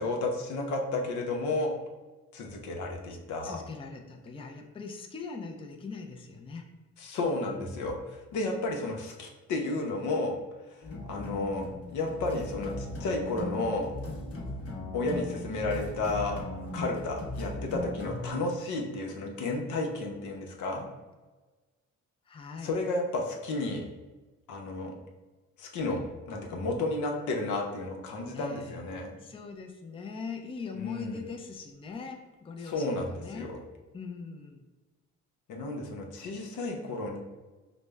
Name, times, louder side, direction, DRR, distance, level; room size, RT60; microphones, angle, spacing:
voice 1, 0.0-1.7 2.3-3.6 7.0-10.4 10.7-14.0 14.9-16.4 16.7-20.9 22.6-23.8 24.5-24.9 25.6-26.0 26.3-29.2 30.7-31.2 32.6-33.6 35.5-37.2, left 2 dB, 75° left, 1 dB, 0.8 m, -32 dB
voice 2, 3.4-6.7 7.4-7.9 22.3-22.8 28.3-28.8 29.2-33.5 33.9-34.7, left 4 dB, 20° left, 2 dB, 0.4 m, -41 dB
sound 1, 10.8-18.3, left 2 dB, 50° left, 0.9 m, -38 dB
5.0 x 2.1 x 3.3 m, 1.2 s
cardioid pair, 90°, 30 cm